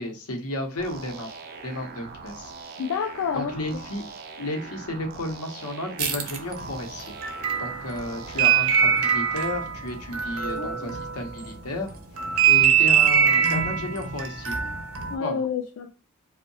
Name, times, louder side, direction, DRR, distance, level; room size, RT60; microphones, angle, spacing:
voice 1, 0.0-1.3 1.6-2.5 3.3-4.0 4.4-7.1 7.6-11.9 12.5-14.6 15.2-15.4, left 1 dB, 90° left, 0.7 m, -33 dB
sound 1, 0.8-9.3, right 4 dB, 45° right, 0.3 m, -42 dB
voice 2, 2.8-3.8 10.6-11.0 15.1-15.9, left 6 dB, 70° left, 0.3 m, -29 dB
sound 2, 6.0-11.5 11.9-15.1, right 8 dB, 80° right, 0.6 m, -23 dB
2.6 x 2.1 x 2.6 m
head